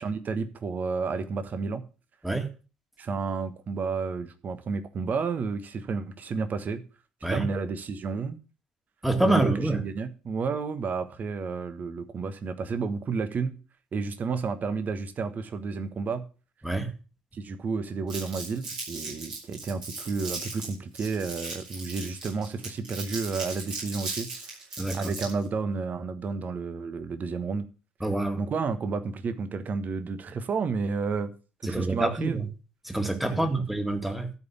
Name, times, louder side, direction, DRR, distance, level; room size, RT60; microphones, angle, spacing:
voice 1, 0.0-1.8 3.0-6.8 7.3-8.4 9.2-13.6 13.9-16.3 17.3-24.6 24.9-27.6 28.4-31.3 31.6-32.4 33.3-33.5, right 4 dB, 40° right, 1.3 m, -31 dB
voice 2, 9.0-9.8 16.6-16.9 24.8-25.1 28.0-28.4 31.7-32.5 32.8-34.3, right 2 dB, 5° right, 2.0 m, -26 dB
Crumpling crinkling, 18.1-25.5, right 3 dB, 75° right, 5.3 m, -37 dB
12.5 x 5.3 x 7.1 m
figure-of-eight pair, 50°, 4 cm